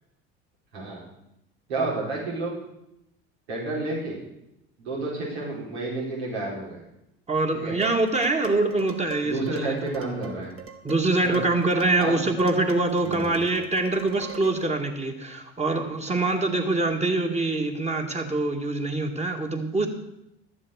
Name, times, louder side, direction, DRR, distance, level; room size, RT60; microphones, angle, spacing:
voice 1, 1.7-2.5 3.5-4.2 4.8-6.8 7.5-7.7 9.2-10.5 11.2-11.4 12.0-12.2 13.0-13.4, right 2 dB, 80° right, -4 dB, 4.5 m, -30 dB
voice 2, 7.3-9.9 10.8-19.9, right 2 dB, 20° right, 4 dB, 2.2 m, -24 dB
Dishes pots and pans, 7.8-14.7, right 8 dB, 40° right, 1.8 m, -41 dB
12.5 x 7.4 x 6.5 m, 0.84 s
hypercardioid pair, 70°, 32 cm